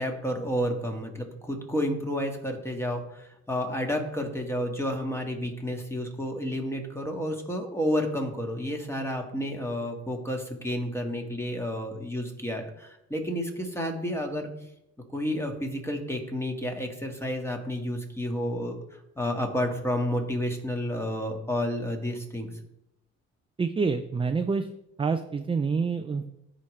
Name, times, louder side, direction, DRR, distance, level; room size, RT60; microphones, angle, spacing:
voice 1, 0.0-14.5 15.1-22.5, equal, 10° left, 3 dB, 1.7 m, -31 dB
voice 2, 23.6-24.7 25.0-26.3, right 5 dB, 20° right, 8 dB, 0.4 m, -27 dB
14.0 x 5.1 x 3.2 m, 0.85 s
cardioid pair, 90°, 30 cm